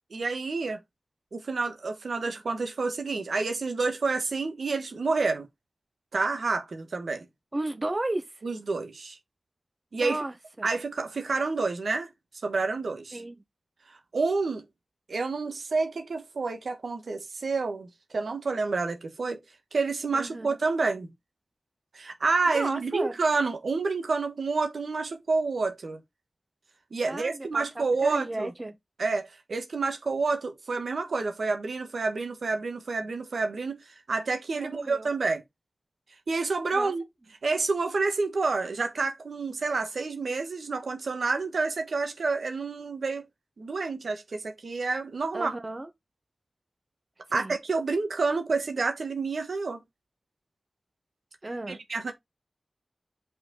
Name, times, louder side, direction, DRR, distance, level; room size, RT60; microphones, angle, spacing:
voice 1, 0.1-0.8 1.3-5.5 6.1-7.2 8.4-9.2 9.9-10.2 10.6-12.1 12.4-13.2 13.9-14.6 15.1-19.4 19.7-21.1 21.9-26.0 26.9-28.5 29.0-33.8 34.1-35.4 36.3-37.0 37.4-43.3 43.6-45.5 47.3-49.8 51.7-52.1, right 4 dB, 90° right, 1.4 m, -29 dB
voice 2, 7.5-8.4 10.0-10.7 13.1-13.4 20.1-20.6 22.5-23.2 27.1-28.7 34.5-35.1 36.7-36.9 45.3-45.9 47.3-47.6 51.4-51.8, right 2 dB, 35° right, 1.2 m, -34 dB
5.5 x 4.3 x 4.0 m
wide cardioid pair, 65°, 0 cm